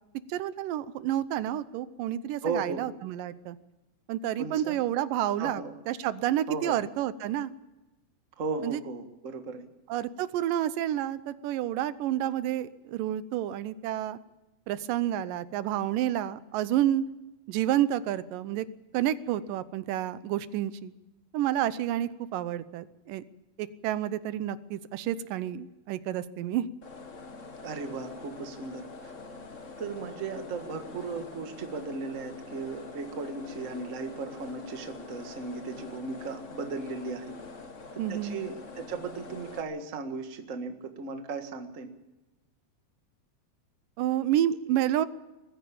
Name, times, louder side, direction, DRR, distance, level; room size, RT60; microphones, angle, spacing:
voice 1, 0.3-3.6 4.1-7.5 8.6-8.8 9.9-14.2 14.7-17.0 17.5-18.7 18.9-20.9 21.3-23.2 23.6-26.7 38.0-38.4 44.0-45.1, right 12 dB, 90° right, 15 dB, 2.5 m, -29 dB
voice 2, 2.4-2.8 4.4-4.8 5.4-5.7 6.5-6.8 8.4-9.6 27.6-29.1 29.8-37.3 37.9-41.9, right 4 dB, 35° right, 6 dB, 1.3 m, -36 dB
sound 1, 26.8-39.6, left 3 dB, 40° left, 1.1 m, -45 dB
20.5 x 15.0 x 8.4 m, 1.0 s
omnidirectional pair, 3.8 m